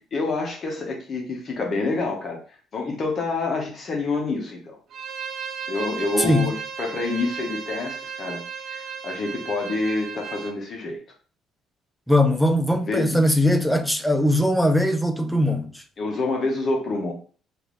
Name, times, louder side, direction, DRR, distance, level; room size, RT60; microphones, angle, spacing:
voice 1, 0.1-4.8 5.7-8.4 8.7-11.0 12.8-13.2 16.0-17.1, left 3 dB, 40° left, 0.9 m, -27 dB
Bowed string instrument, 4.9-10.6, right 6 dB, 55° right, 0.4 m, -35 dB
voice 2, 12.1-15.7, left 1 dB, ahead, 0.4 m, -20 dB
3.3 x 2.5 x 3.1 m
cardioid pair, 115°, 0 cm